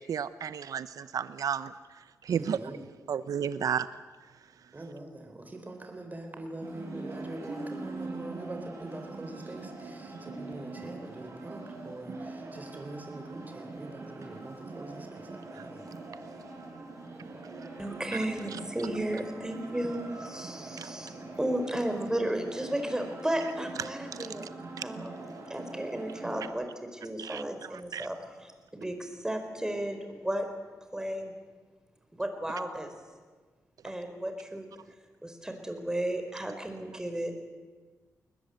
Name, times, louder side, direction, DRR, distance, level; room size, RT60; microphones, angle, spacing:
voice 1, 0.0-1.7 2.3-2.6 3.1-3.9 20.8-20.9 27.2-27.4 27.9-28.1, right 8 dB, 75° right, 14 dB, 0.7 m, -32 dB
voice 2, 2.3-2.9 4.7-15.9, right 2 dB, 30° right, 4 dB, 3.9 m, -43 dB
sound 1, 6.6-26.5, right 3 dB, 55° right, 6.7 m, -43 dB
voice 3, 17.8-24.5 24.8-25.2 25.5-28.5 28.8-30.5 30.9-31.3 32.1-32.9 33.8-34.7 35.2-37.3, right 1 dB, 10° right, 5 dB, 4.3 m, -34 dB
21.5 x 20.5 x 7.9 m, 1.4 s
cardioid pair, 85°, 6 cm